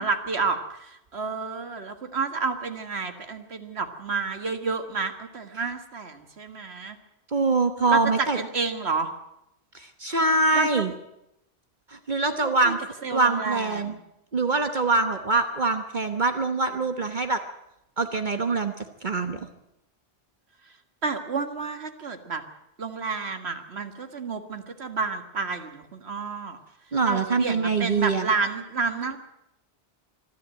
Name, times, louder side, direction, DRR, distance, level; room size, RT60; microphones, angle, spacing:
voice 1, 0.0-7.0 7.9-9.1 10.5-10.9 12.3-12.7 13.0-14.0 21.0-22.4 22.8-26.6 27.0-29.2, right 4 dB, 75° right, 8 dB, 1.9 m, -30 dB
voice 2, 7.3-8.4 9.7-10.9 11.9-12.8 13.1-14.0 14.3-17.4 18.0-18.7 19.0-19.4 26.9-28.3, right 3 dB, 45° right, 7 dB, 1.3 m, -24 dB
25.5 x 11.5 x 8.9 m, 0.84 s
omnidirectional pair, 1.1 m